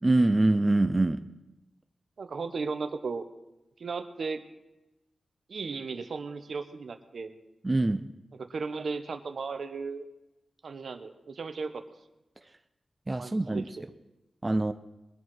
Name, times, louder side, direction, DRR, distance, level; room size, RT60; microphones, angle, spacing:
voice 1, 0.0-1.2 7.6-8.1 13.1-13.6 14.4-14.7, right 2 dB, 20° right, 9 dB, 0.6 m, -24 dB
voice 2, 2.2-3.3 3.8-4.4 5.5-7.3 8.4-10.0 10.6-11.8 13.2-13.6, right 4 dB, 70° right, 8 dB, 1.1 m, -35 dB
21.5 x 7.5 x 6.2 m, 0.97 s
wide cardioid pair, 105°, 0 cm